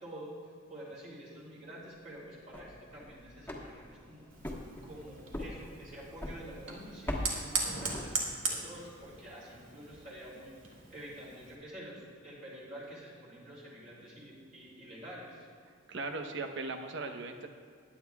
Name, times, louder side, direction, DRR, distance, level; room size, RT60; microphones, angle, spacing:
voice 1, 0.0-4.3 4.8-10.5 10.9-15.5, right 1 dB, 40° right, -6 dB, 2.9 m, -48 dB
sound 1, 2.3-8.6, left 1 dB, 10° left, 1.4 m, -43 dB
Fire, 4.3-11.5, right 4 dB, 85° right, 2.0 m, -40 dB
voice 2, 15.9-17.5, right 3 dB, 60° right, 5 dB, 0.9 m, -38 dB
21.5 x 9.5 x 2.4 m, 2.1 s
head